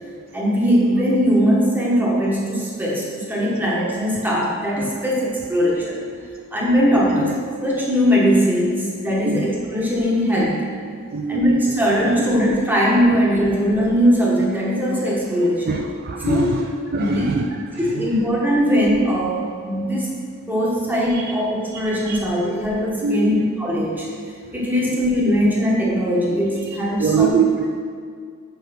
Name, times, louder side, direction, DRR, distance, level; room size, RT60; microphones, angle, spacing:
voice 1, 0.3-6.0 6.5-10.6 11.3-15.8 16.2-16.5 16.9-17.2 17.8-20.1 20.5-24.1 24.5-27.3, equal, 10° right, -5 dB, 1.4 m, -20 dB
voice 2, 6.9-7.3 9.2-9.5 11.1-11.8 12.1-12.3 13.1-13.2 15.7-17.5 17.7-18.2 21.1-21.3 21.7-21.8 22.1-22.2 23.0-23.4 24.8-25.0 26.7-27.7, right 4 dB, 45° right, 3 dB, 0.3 m, -24 dB
5.6 x 5.2 x 5.8 m, 2.1 s
head